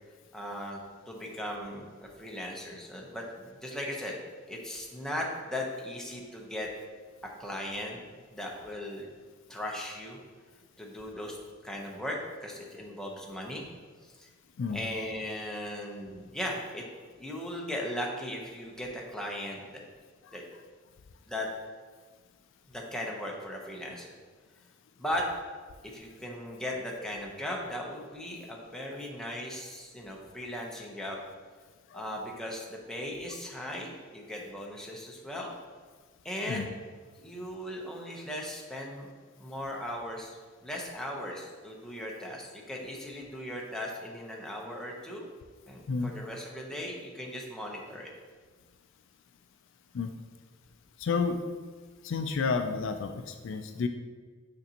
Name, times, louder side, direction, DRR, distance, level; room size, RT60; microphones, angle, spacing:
voice 1, 0.3-0.8 1.1-1.8 2.2-4.2 4.5-6.7 7.2-8.0 8.3-9.1 9.5-10.2 10.8-11.4 11.6-13.6 14.0-14.3 14.7-16.9 17.2-19.8 20.3-20.5 21.3-21.5 22.7-24.1 25.0-25.3 25.8-31.2 31.9-35.5 36.2-36.7 37.2-39.1 39.4-40.4 40.6-45.3 45.7-48.1, left 1 dB, 5° left, -2 dB, 0.8 m, -37 dB
voice 2, 51.0-51.4 52.0-53.9, left 4 dB, 60° left, 7 dB, 0.4 m, -30 dB
6.4 x 5.3 x 2.9 m, 1.5 s
head